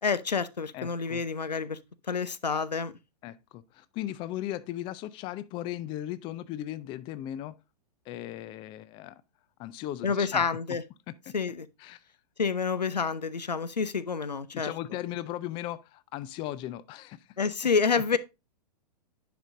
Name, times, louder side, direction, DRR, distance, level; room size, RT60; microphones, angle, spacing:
voice 1, 0.0-1.8 2.1-2.9 10.0-10.8 11.3-11.7 12.4-14.7 17.4-18.2, left 5 dB, 85° left, 0.6 m, -28 dB
voice 2, 0.7-1.2 3.2-7.5 8.1-9.2 9.6-10.8 11.1-11.3 11.8-12.0 14.5-17.4, left 13 dB, 25° left, 0.4 m, -37 dB
10.0 x 5.1 x 2.5 m
figure-of-eight pair, 105°, 21 cm